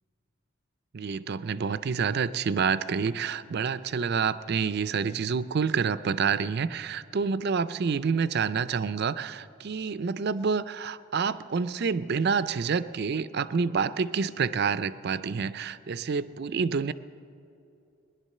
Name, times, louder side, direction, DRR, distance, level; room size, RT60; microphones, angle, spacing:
voice 1, 0.9-16.9, right 5 dB, 50° right, 15 dB, 0.4 m, -28 dB
19.5 x 11.0 x 6.6 m, 2.6 s
head